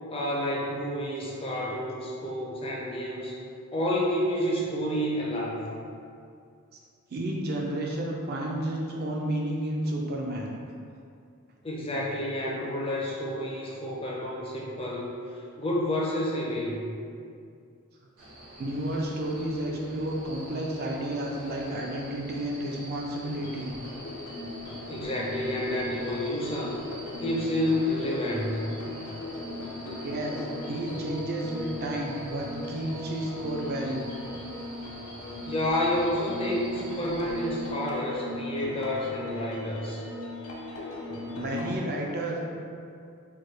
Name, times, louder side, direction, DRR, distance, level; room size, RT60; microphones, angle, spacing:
voice 1, 0.1-3.4 3.7-5.7 11.6-15.1 15.6-16.9 24.8-26.8 27.2-28.7 35.4-40.0, left 1 dB, 25° left, -3 dB, 0.4 m, -29 dB
voice 2, 7.1-10.5 18.6-23.7 30.0-34.1 41.3-42.4, right 1 dB, 45° right, -1 dB, 0.4 m, -31 dB
sound 1, 18.2-37.7, right 1 dB, 75° right, 1.1 m, -46 dB
sound 2, 23.3-41.8, left 2 dB, 75° left, 0.5 m, -38 dB
3.4 x 2.2 x 3.2 m, 2.4 s
head